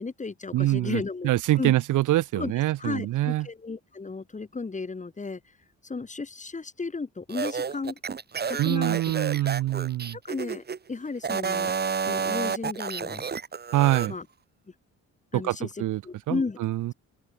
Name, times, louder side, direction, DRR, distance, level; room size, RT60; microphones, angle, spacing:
voice 1, 0.0-1.3 1.6-1.7 2.4-2.5 2.8-5.5 5.8-8.0 8.5-9.0 10.2-11.7 12.0-13.3 14.1-14.3 15.3-16.6, left 4 dB, 25° left, 2.6 m, -34 dB
voice 2, 0.5-3.5 8.6-10.2 13.7-14.1 15.3-16.0 16.3-16.9, right 15 dB, 80° right, 1.4 m, -25 dB
sound 1, 7.3-10.8 11.2-14.1, right 6 dB, 35° right, 1.5 m, -30 dB
open air
cardioid pair, 90°, 30 cm